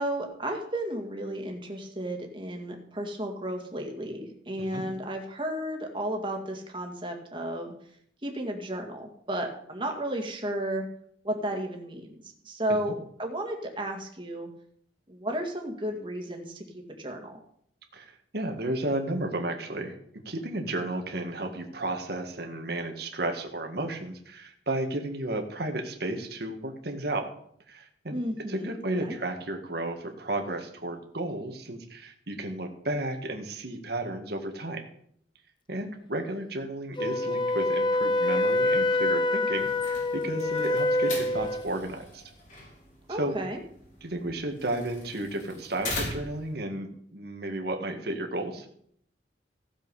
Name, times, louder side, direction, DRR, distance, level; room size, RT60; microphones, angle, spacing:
voice 1, 0.0-7.7 8.2-10.9 11.2-14.5 15.1-16.6 17.0-17.4 28.1-28.7 29.0-29.2 43.1-43.6, right 1 dB, 25° right, 2 dB, 2.1 m, -33 dB
voice 2, 17.9-27.3 27.7-34.8 35.7-42.2 43.1-43.3 44.0-48.7, right 1 dB, 60° right, 4 dB, 1.8 m, -33 dB
Wind instrument woodwind instrument, 37.0-41.7, left 2 dB, 25° left, 0.7 m, -26 dB
sound 1, 39.6-46.5, left 2 dB, 45° left, 4.1 m, -40 dB
15.5 x 7.5 x 5.5 m, 0.67 s
head